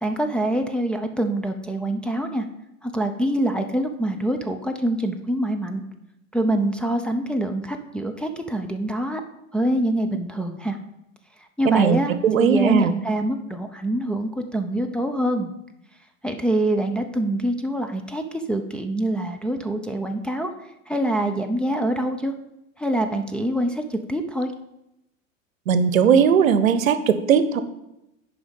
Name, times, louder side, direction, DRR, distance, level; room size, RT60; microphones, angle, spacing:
voice 1, 0.0-2.5 2.8-5.8 6.3-9.2 9.5-10.8 11.4-15.5 16.2-20.5 20.9-22.3 22.8-24.5, right 1 dB, ahead, 3 dB, 0.6 m, -25 dB
voice 2, 11.6-12.9 25.7-27.6, right 7 dB, 75° right, 13 dB, 0.9 m, -18 dB
9.6 x 5.0 x 5.4 m, 0.87 s
hypercardioid pair, 90°, 40 cm